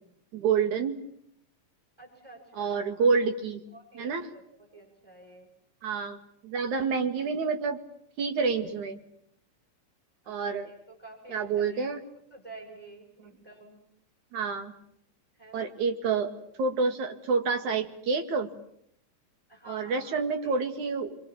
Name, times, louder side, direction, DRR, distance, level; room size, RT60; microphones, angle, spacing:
voice 1, 0.3-1.0 2.6-3.6 4.0-4.2 5.8-6.2 6.4-7.8 8.2-9.0 10.3-10.7 11.3-12.0 14.3-14.7 15.5-16.3 16.6-18.5 19.7-21.2, right 5 dB, 90° right, 6 dB, 3.6 m, -28 dB
voice 2, 2.0-3.2 3.7-5.5 10.2-12.0 12.3-13.8 15.3-15.7 19.5-20.6, right 2 dB, 10° right, 1 dB, 6.2 m, -50 dB
26.0 x 25.0 x 8.8 m, 0.71 s
omnidirectional pair, 3.3 m